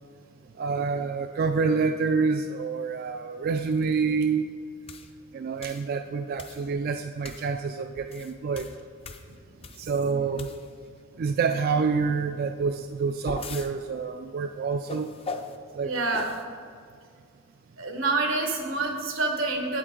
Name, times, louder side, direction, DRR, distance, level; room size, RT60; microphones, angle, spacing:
voice 1, 0.6-4.5 5.3-8.7 9.8-10.5 11.2-15.1 15.8-15.9, right 5 dB, 50° right, 6 dB, 0.3 m, -27 dB
sound 1, 4.9-5.1 5.6-5.9 6.4-6.7 7.2-7.5 8.0-9.9 10.3-10.9 12.8-13.7 14.9-15.6 16.1-16.4, left 4 dB, 30° left, 0.5 m, -39 dB
voice 2, 15.8-16.3 17.8-19.8, right 3 dB, 90° right, 3 dB, 1.3 m, -27 dB
8.4 x 8.1 x 3.8 m, 2.1 s
head